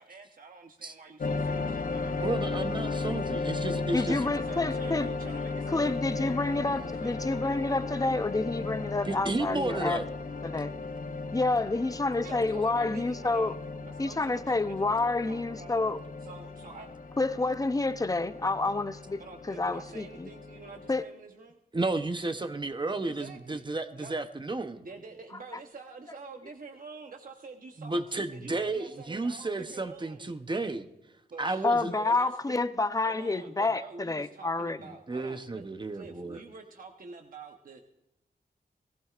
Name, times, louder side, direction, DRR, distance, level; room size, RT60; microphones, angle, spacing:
voice 1, 0.0-2.4 4.4-6.4 6.8-7.3 12.2-14.7 15.2-15.7 16.2-16.9 19.2-21.6 23.0-23.6 24.0-24.2 24.8-30.4 31.3-32.6 33.0-35.6 35.9-37.8, right 4 dB, 60° right, 3 dB, 1.0 m, -47 dB
sound 1, 1.2-21.0, left 3 dB, 55° left, 0.8 m, -35 dB
voice 2, 2.2-4.3 9.1-10.0 21.7-24.8 27.8-30.9 31.4-31.9 35.1-36.4, right 2 dB, 30° right, 8 dB, 0.8 m, -32 dB
voice 3, 3.9-5.1 5.7-10.0 10.4-10.7 11.3-13.5 14.0-16.0 17.2-19.2 19.5-20.3 20.9-21.0 31.6-34.8, left 3 dB, 20° left, 12 dB, 0.6 m, -28 dB
19.0 x 15.0 x 2.5 m, 0.87 s
wide cardioid pair, 115°, 16 cm